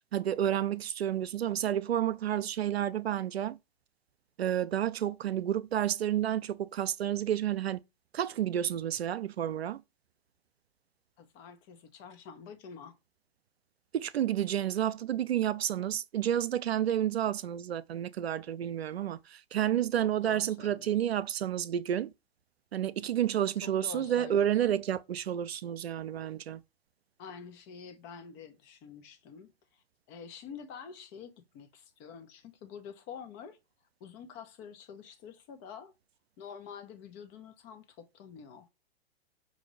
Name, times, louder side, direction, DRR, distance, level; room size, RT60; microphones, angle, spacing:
voice 1, 0.1-3.6 4.4-7.8 8.1-9.8 13.9-22.1 22.7-26.6, right 11 dB, 85° right, 0.5 m, -30 dB
voice 2, 11.2-13.0 20.2-21.0 23.6-24.7 27.2-33.6 34.0-35.9 36.4-38.7, left 7 dB, 40° left, 1.1 m, -47 dB
5.5 x 2.6 x 3.2 m
hypercardioid pair, 105°, 30 cm